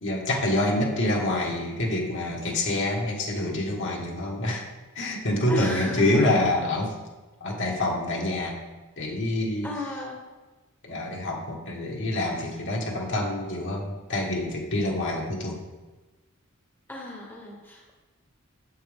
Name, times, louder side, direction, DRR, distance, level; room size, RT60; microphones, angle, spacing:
voice 1, 0.0-4.6 4.9-6.9 7.4-8.6 9.0-9.7 10.8-15.6, left 1 dB, 60° left, -1 dB, 1.6 m, -26 dB
voice 2, 5.5-6.7 9.6-10.2 16.9-17.9, left 2 dB, 10° left, -1 dB, 1.1 m, -34 dB
8.8 x 7.5 x 3.6 m, 1.2 s
head